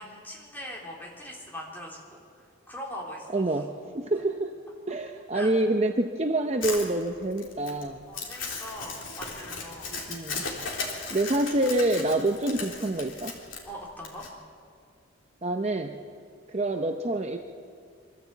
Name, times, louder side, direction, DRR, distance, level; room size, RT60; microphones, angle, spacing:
voice 1, 0.0-3.6 5.3-5.5 8.1-9.9 13.7-14.3, equal, 10° left, -4 dB, 3.7 m, -41 dB
voice 2, 3.3-4.5 4.9-8.0 9.9-10.4 11.1-13.3 15.4-15.9 16.5-17.4, right 2 dB, 30° right, 4 dB, 0.7 m, -27 dB
Crumpling crinkling, 6.6-14.3, left 4 dB, 65° left, 3.6 m, -37 dB
24.5 x 14.0 x 8.2 m, 2.3 s
head